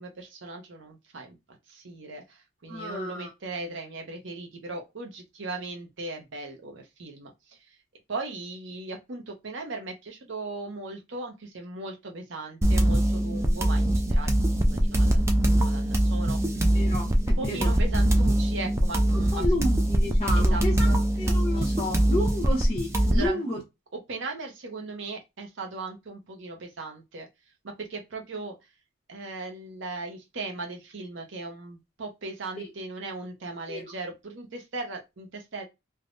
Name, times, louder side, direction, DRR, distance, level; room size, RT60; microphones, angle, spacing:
voice 1, 0.0-1.4 1.7-7.8 8.1-16.8 17.4-19.5 20.3-21.7 23.1-23.4 23.9-27.3 27.6-28.7 29.1-35.6, right 3 dB, 65° right, 0.7 m, -38 dB
voice 2, 2.7-3.3 16.7-17.7 19.3-23.6 32.6-32.7 33.7-33.9, left 1 dB, 30° left, 0.8 m, -31 dB
sound 1, 12.6-23.3, right 1 dB, 15° right, 0.3 m, -23 dB
3.4 x 2.1 x 2.5 m
head